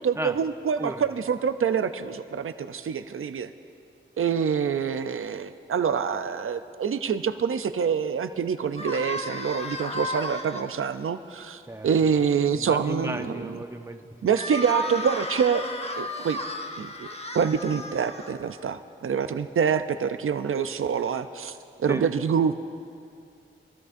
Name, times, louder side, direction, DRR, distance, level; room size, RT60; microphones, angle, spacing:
voice 1, 0.0-3.5 4.2-13.6 14.2-15.6 15.9-16.4 16.8-17.1 17.3-22.6, right 7 dB, 90° right, 10 dB, 0.5 m, -26 dB
sound 1, 8.8-10.6 14.3-18.6, left 2 dB, 30° left, 1.1 m, -34 dB
voice 2, 11.7-12.1 12.5-14.1 21.9-22.1, right 1 dB, 15° right, 5 dB, 0.9 m, -34 dB
24.0 x 16.0 x 2.6 m, 2.4 s
wide cardioid pair, 60°, 21 cm